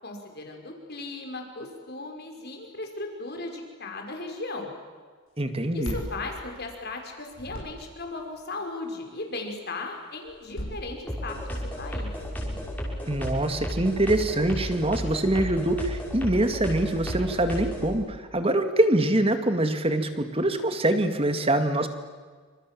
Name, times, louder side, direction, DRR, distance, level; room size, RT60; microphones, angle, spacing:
voice 1, 0.0-4.7 5.7-12.1, left 2 dB, 50° left, 3 dB, 5.6 m, -37 dB
voice 2, 5.4-6.0 13.1-21.9, right 1 dB, 25° right, 8 dB, 2.2 m, -24 dB
sound 1, 5.6-7.0 7.3-8.1 10.3-11.5 12.2-13.0, equal, 80° left, 6.5 m, -39 dB
sound 2, 11.1-17.9, equal, 10° left, 6.5 m, -33 dB
28.5 x 27.0 x 7.7 m, 1.5 s
head